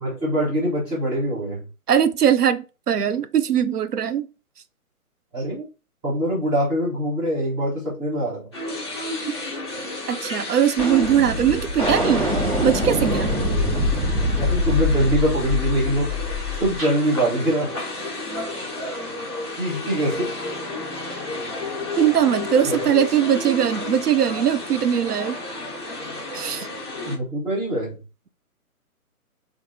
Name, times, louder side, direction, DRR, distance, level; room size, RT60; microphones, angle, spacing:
voice 1, 0.0-1.6 5.3-5.7 6.0-8.5 14.3-16.1 16.6-17.7 19.6-20.3 22.6-22.9 27.1-28.0, right 1 dB, 10° right, 0.8 m, -23 dB
voice 2, 1.9-4.3 10.1-12.3 12.6-13.3 22.0-25.4 26.3-26.7, right 9 dB, 90° right, 0.5 m, -20 dB
sound 1, 8.5-27.2, left 2 dB, 20° left, 0.5 m, -32 dB
sound 2, 10.3-10.5 10.8-17.0, left 1 dB, 25° right, 1.5 m, -24 dB
4.3 x 2.6 x 2.6 m
figure-of-eight pair, 140°, 45 cm